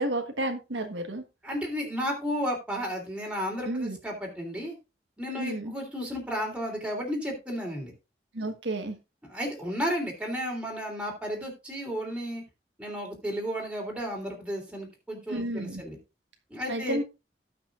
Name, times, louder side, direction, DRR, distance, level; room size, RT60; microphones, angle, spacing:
voice 1, 0.0-1.2 3.7-4.0 5.3-5.7 8.3-9.0 15.3-15.8 16.7-17.0, right 1 dB, 90° right, 5 dB, 1.4 m, -31 dB
voice 2, 1.4-4.7 5.2-7.9 9.3-12.4 12.8-16.0 16.5-17.0, equal, 5° right, -1 dB, 3.2 m, -33 dB
18.0 x 6.0 x 2.5 m, 0.27 s
head